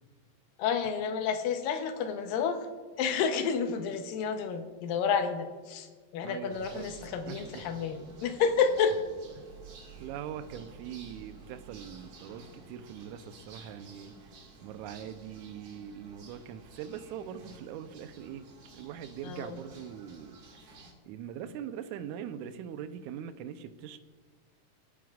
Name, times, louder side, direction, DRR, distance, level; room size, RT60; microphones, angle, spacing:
voice 1, 0.6-2.7 3.0-9.1 19.2-19.6, left 6 dB, 90° left, 7 dB, 2.5 m, -30 dB
voice 2, 6.2-6.9 7.3-7.6 9.4-9.5 10.0-14.2 14.6-18.5 18.7-20.4 21.1-24.0, right 9 dB, 80° right, 10 dB, 1.8 m, -42 dB
sound 1, 6.5-20.9, right 3 dB, 60° right, 3.1 m, -52 dB
21.0 x 8.4 x 2.4 m, 1.5 s
omnidirectional pair, 3.8 m